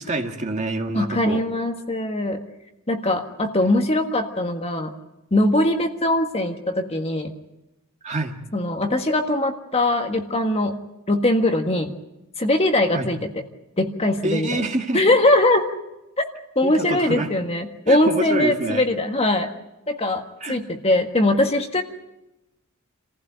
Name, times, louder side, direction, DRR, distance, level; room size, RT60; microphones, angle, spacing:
voice 1, 0.0-1.4 8.0-8.4 12.9-13.1 14.2-15.0 16.6-17.3 17.9-18.8 20.4-20.6, right 2 dB, 30° right, 3 dB, 2.0 m, -26 dB
voice 2, 0.9-2.4 2.9-4.9 5.3-7.3 8.5-10.8 11.1-11.9 12.4-13.3 13.8-14.6 14.9-15.7 16.5-19.5 19.9-20.2 20.5-21.8, left 1 dB, 25° left, 5 dB, 1.6 m, -21 dB
27.5 x 15.5 x 9.2 m, 0.95 s
head